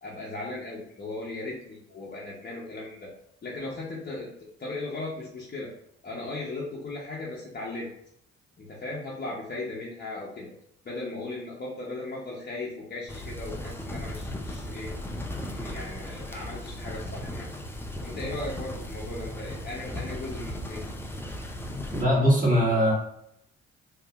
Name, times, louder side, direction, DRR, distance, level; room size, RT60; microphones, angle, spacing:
voice 1, 0.0-3.1 3.4-5.7 6.0-7.9 8.6-10.5 10.8-14.9 15.4-17.5 18.0-20.8, left 2 dB, 30° left, -6 dB, 0.8 m, -37 dB
sound 1, 13.1-22.0, left 1 dB, 10° left, 0.4 m, -36 dB
voice 2, 21.9-22.9, equal, 25° right, -4 dB, 1.5 m, -21 dB
2.7 x 2.5 x 2.4 m, 0.73 s
hypercardioid pair, 50°, 30 cm